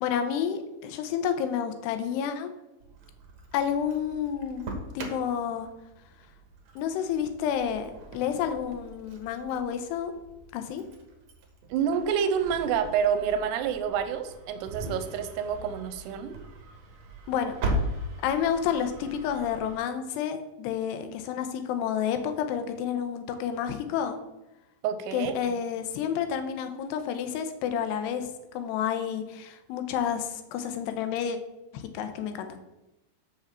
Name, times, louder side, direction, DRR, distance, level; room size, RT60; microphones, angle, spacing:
voice 1, 0.0-2.5 3.5-4.7 4.9-5.7 6.8-10.1 10.5-10.8 17.3-17.5 18.2-24.2 25.1-28.3 28.5-31.4 31.7-32.6, left 8 dB, 85° left, 8 dB, 2.9 m, -30 dB
Engine starting, 2.8-19.8, right 1 dB, 70° right, 1.6 m, -39 dB
voice 2, 11.7-16.4 24.8-25.3, right 7 dB, 85° right, 9 dB, 2.7 m, -28 dB
7.0 x 5.8 x 6.8 m, 0.97 s
omnidirectional pair, 4.8 m